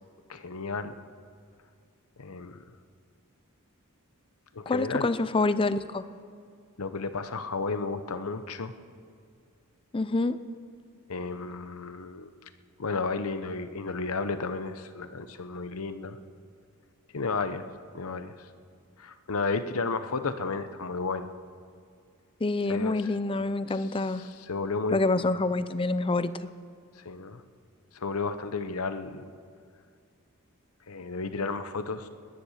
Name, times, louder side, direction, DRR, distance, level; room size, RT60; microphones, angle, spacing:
voice 1, 0.3-0.9 2.2-2.6 4.5-5.1 6.8-8.7 11.1-12.3 12.8-16.2 17.1-17.6 17.9-18.5 19.0-21.3 22.7-23.1 23.7-25.3 27.0-27.4 27.9-29.2 30.9-32.1, left 4 dB, 70° left, 11 dB, 0.9 m, -33 dB
voice 2, 4.7-6.0 9.9-10.4 22.4-24.2 24.9-26.5, left 2 dB, 25° left, 14 dB, 0.5 m, -27 dB
20.0 x 10.5 x 6.5 m, 2.2 s
head